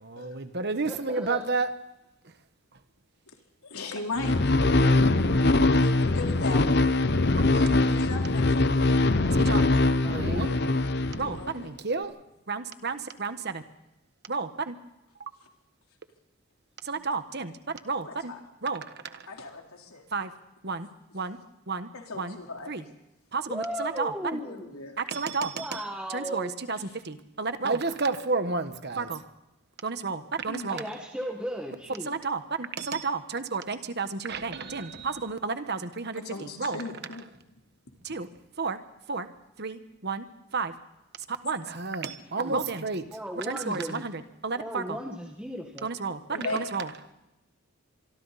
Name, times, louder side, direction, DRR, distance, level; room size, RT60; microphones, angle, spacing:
voice 1, 0.0-1.7 7.5-7.7 9.4-9.7 10.1-10.6 11.2-12.1 12.5-13.6 14.3-14.8 16.8-18.3 18.6-19.3 20.1-20.3 20.6-20.9 21.1-21.4 21.7-21.9 22.1-22.4 22.7-22.8 23.3-24.4 25.0-25.8 26.1-26.8 27.0-29.2 29.8-30.8 32.1-36.8 38.0-38.3 38.6-38.8 39.1-39.3 39.6-40.2 40.5-40.7 41.3-43.1 43.4-45.0 45.8-46.2 46.5-46.9, right 4 dB, 50° right, 10 dB, 1.3 m, -31 dB
voice 2, 0.8-1.5 7.4-8.0 10.0-10.5 23.5-24.7 25.5-26.5 30.7-32.1 42.4-42.6 43.1-44.0 44.6-45.9 46.3-46.6, equal, 5° right, 0 dB, 1.7 m, -36 dB
voice 3, 3.6-4.4 5.8-6.6 7.9-9.0 11.3-11.7 17.9-18.4 19.3-20.0 21.9-22.7 24.4-24.9 30.5-30.7 36.1-37.3 46.3-46.6, left 3 dB, 85° left, 1 dB, 3.9 m, -37 dB
sound 1, 4.2-11.6, left 2 dB, 50° left, 0.9 m, -22 dB
25.5 x 24.0 x 4.2 m, 0.91 s
head